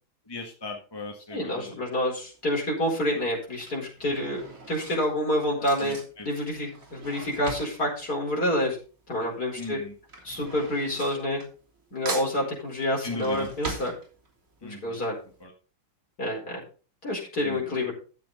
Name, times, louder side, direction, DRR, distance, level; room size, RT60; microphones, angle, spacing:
voice 1, 0.3-1.8 5.6-6.3 9.6-9.9 13.0-13.5 14.6-15.0 15.4-15.5 17.4-17.6, left 2 dB, 15° left, 2 dB, 1.5 m, -38 dB
voice 2, 1.3-4.4 4.7-6.0 6.2-8.8 9.1-9.8 10.2-11.4 11.9-13.9 14.6-15.2 16.2-16.6 17.0-17.9, left 1 dB, 50° left, -2 dB, 5.1 m, -28 dB
Drawer open or close / Cutlery silverware, 2.1-2.4 3.3-9.2 9.4-11.8 12.1-14.6 15.0-15.1 15.3-15.4, right 3 dB, 40° right, 3.6 m, -40 dB
13.0 x 7.5 x 4.1 m, 0.36 s
omnidirectional pair, 2.2 m